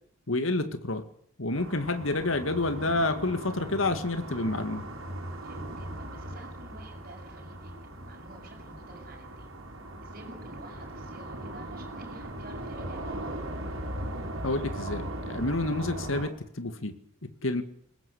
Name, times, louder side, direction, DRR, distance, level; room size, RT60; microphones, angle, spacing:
voice 1, 0.3-1.1 1.4-4.9 14.4-17.0 17.2-17.6, left 2 dB, 75° left, 10 dB, 2.0 m, -29 dB
sound 1, 1.5-16.3, right 1 dB, 85° right, 5.1 m, -39 dB
voice 2, 5.4-9.5 10.0-13.4, right 1 dB, 45° right, 0 dB, 7.7 m, -50 dB
22.0 x 19.5 x 8.2 m, 0.66 s
head